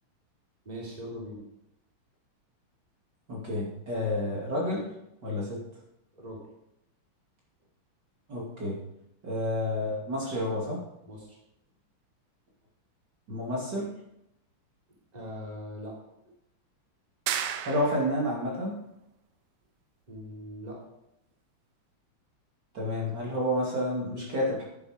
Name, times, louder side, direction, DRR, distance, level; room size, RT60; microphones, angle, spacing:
voice 1, 0.6-1.4 6.1-6.4 11.1-11.4 15.1-16.0 20.1-20.8, equal, 20° right, -3 dB, 3.2 m, -40 dB
voice 2, 3.3-4.9 5.2-5.6 8.3-8.8 9.2-10.8 13.3-13.9 17.7-18.8 22.7-24.6, left 1 dB, 50° right, -3 dB, 3.1 m, -30 dB
sound 1, 17.3-18.3, right 9 dB, 80° right, 1.7 m, -33 dB
10.5 x 10.0 x 5.1 m, 0.83 s
omnidirectional pair, 2.4 m